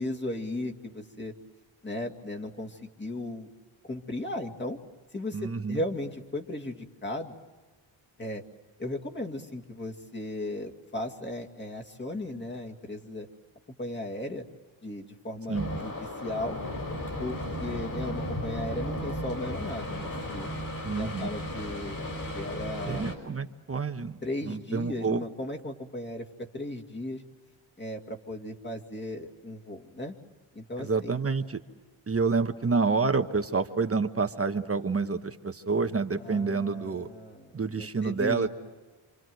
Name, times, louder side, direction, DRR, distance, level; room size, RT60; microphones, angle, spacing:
voice 1, 0.0-1.3 1.8-3.5 3.8-4.8 5.1-7.3 8.2-8.4 8.8-13.3 13.8-14.4 14.8-16.6 17.2-20.5 21.0-22.1 22.3-23.0 24.2-26.3 26.5-27.2 27.8-30.1 30.5-31.1 36.2-38.5, left 1 dB, 20° left, 1 dB, 2.2 m, -36 dB
voice 2, 5.3-5.8 15.5-15.7 20.8-21.3 22.9-24.2 24.5-25.2 30.8-31.6 32.1-37.1 37.5-38.5, right 4 dB, 30° right, 7 dB, 1.1 m, -28 dB
sound 1, 15.5-23.2, left 1 dB, 40° left, 5.3 m, -35 dB
27.5 x 27.5 x 7.8 m, 1.3 s
wide cardioid pair, 145°, 48 cm